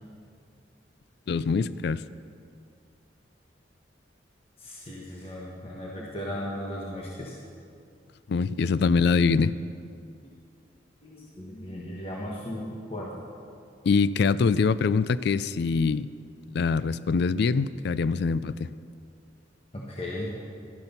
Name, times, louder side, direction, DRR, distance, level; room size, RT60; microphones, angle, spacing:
voice 1, 1.3-2.0 8.3-9.5 13.8-16.1 16.5-18.7, left 5 dB, 60° left, 17 dB, 0.3 m, -24 dB
voice 2, 4.6-7.3 10.2-10.3 11.0-13.2 19.7-20.3, left 1 dB, 30° left, -4 dB, 1.2 m, -36 dB
12.5 x 11.0 x 5.8 m, 2.4 s
head